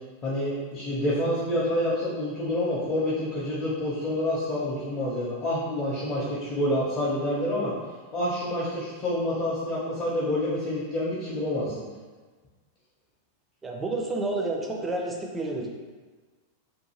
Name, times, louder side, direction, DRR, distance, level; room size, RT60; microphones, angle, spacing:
voice 1, 0.2-7.7 8.1-11.9, left 1 dB, 30° left, -8 dB, 0.6 m, -28 dB
voice 2, 13.6-15.7, right 2 dB, 15° right, 0 dB, 0.4 m, -30 dB
2.6 x 2.4 x 2.8 m, 1.4 s
figure-of-eight pair, 90°, 0 cm